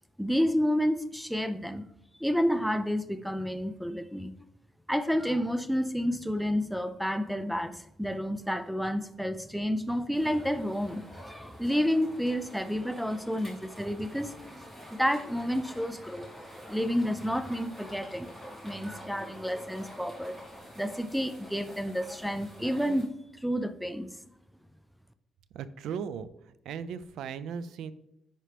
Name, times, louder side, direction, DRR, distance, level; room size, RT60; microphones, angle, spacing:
voice 1, 0.2-1.8 2.2-4.3 4.9-14.4 14.9-16.3 16.7-18.3 18.6-20.3 20.8-23.1 23.4-24.1, equal, ahead, 12 dB, 0.3 m, -30 dB
sound 1, 10.1-23.0, equal, 15° right, 2.5 m, -47 dB
voice 2, 25.5-27.9, right 7 dB, 80° right, 15 dB, 0.4 m, -37 dB
10.0 x 4.4 x 3.3 m, 0.79 s
cardioid pair, 155°, 0 cm